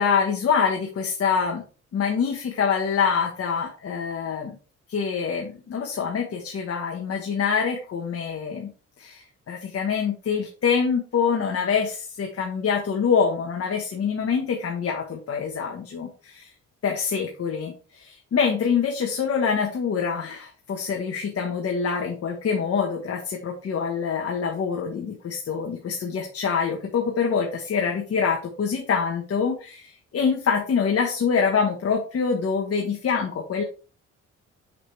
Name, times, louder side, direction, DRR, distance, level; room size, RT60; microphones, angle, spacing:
voice 1, 0.0-1.6 1.9-4.6 4.9-8.7 9.0-16.5 16.8-33.6, left 6 dB, 50° left, 1 dB, 1.4 m, -25 dB
6.4 x 5.9 x 3.4 m, 0.37 s
cardioid pair, 90°, 30 cm